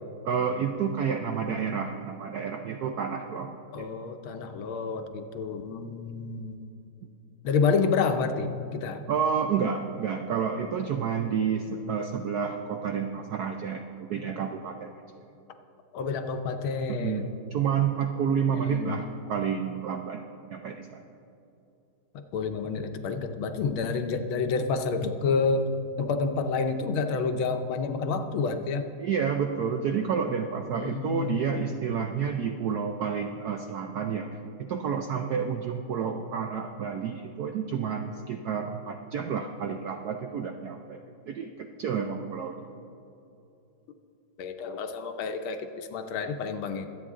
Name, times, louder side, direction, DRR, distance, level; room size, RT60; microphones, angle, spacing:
voice 1, 0.2-3.5 3.7-3.9 9.1-14.9 16.9-20.2 20.5-21.0 29.0-41.0 41.3-42.6, right 7 dB, 75° right, 5 dB, 0.9 m, -30 dB
voice 2, 3.7-6.5 7.4-9.0 15.9-17.3 18.7-19.0 22.3-25.7 26.0-28.9 30.7-31.4 44.4-46.9, left 4 dB, 75° left, 7 dB, 1.6 m, -29 dB
23.5 x 8.5 x 3.7 m, 2.8 s
omnidirectional pair, 2.3 m